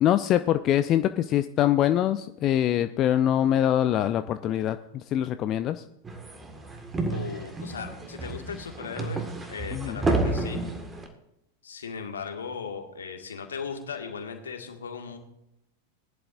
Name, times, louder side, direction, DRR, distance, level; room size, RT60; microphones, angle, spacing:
voice 1, 0.0-5.8 9.7-10.0, left 11 dB, 35° left, 11 dB, 0.5 m, -24 dB
sound 1, 6.0-11.1, right 2 dB, 15° right, 1.9 m, -31 dB
voice 2, 7.1-9.2 9.5-10.7 11.6-15.2, left 6 dB, 70° left, 4 dB, 2.0 m, -37 dB
20.0 x 11.0 x 2.6 m, 0.82 s
figure-of-eight pair, 90°, 0 cm